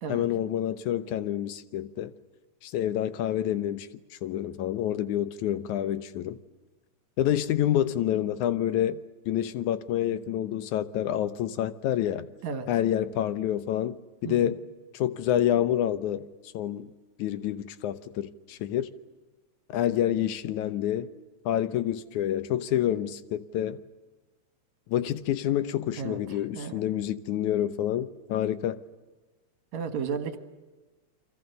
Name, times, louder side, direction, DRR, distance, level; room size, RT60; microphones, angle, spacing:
voice 1, 0.1-2.1 2.6-3.9 4.2-6.4 7.2-9.0 9.3-12.3 12.7-14.6 14.9-16.3 16.5-16.9 17.2-18.9 19.7-21.1 21.5-23.8 24.9-28.8, left 11 dB, 80° left, 2.4 m, -28 dB
voice 2, 26.0-26.8 29.7-30.4, right 6 dB, 70° right, 2.9 m, -34 dB
30.0 x 24.0 x 6.8 m
omnidirectional pair, 3.4 m